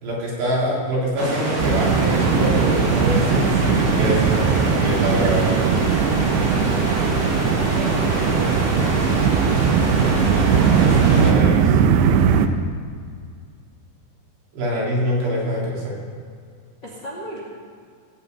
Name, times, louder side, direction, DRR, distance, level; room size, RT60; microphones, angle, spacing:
voice 1, 0.0-5.5 10.8-11.8 14.5-16.0, equal, 65° right, -5 dB, 5.6 m, -25 dB
sound 1, 1.2-11.3, right 1 dB, 40° right, 1.4 m, -25 dB
sound 2, 1.6-12.5, right 7 dB, 85° right, 2.9 m, -19 dB
voice 2, 7.7-9.4 16.8-17.4, equal, 35° left, -4 dB, 2.1 m, -36 dB
17.5 x 6.8 x 8.3 m, 2.2 s
omnidirectional pair, 5.2 m